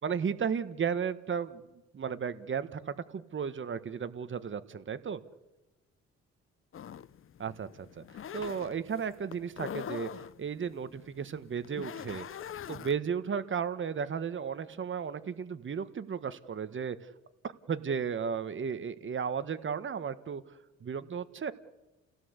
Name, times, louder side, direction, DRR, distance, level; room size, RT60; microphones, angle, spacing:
voice 1, 0.0-1.6 1.9-5.2 7.4-8.0 8.3-10.1 10.4-12.3 12.7-17.0 17.4-20.4 20.8-21.5, right 7 dB, 40° right, 12 dB, 1.5 m, -34 dB
sound 1, 6.7-13.0, left 9 dB, 45° left, 0.8 m, -43 dB
29.5 x 17.0 x 8.3 m, 1.1 s
cardioid pair, 90°, 30 cm